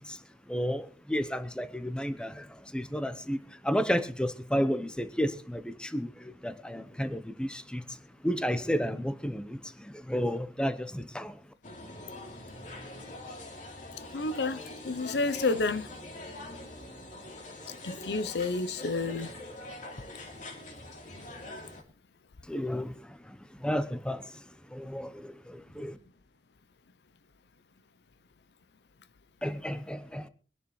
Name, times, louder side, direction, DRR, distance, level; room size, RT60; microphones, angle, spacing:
voice 1, 0.5-2.3 2.7-3.4 3.6-6.1 6.4-7.8 8.2-9.6 10.1-11.3 22.5-22.9 23.6-24.2 24.7-25.1 25.8-25.9 29.4-30.2, equal, 5° left, 0.8 m, -31 dB
sound 1, 11.6-21.8, left 1 dB, 45° left, 2.8 m, -44 dB
voice 2, 14.1-14.6 14.8-15.9 17.8-19.3, left 3 dB, 65° left, 0.6 m, -30 dB
24.0 x 11.0 x 3.2 m
head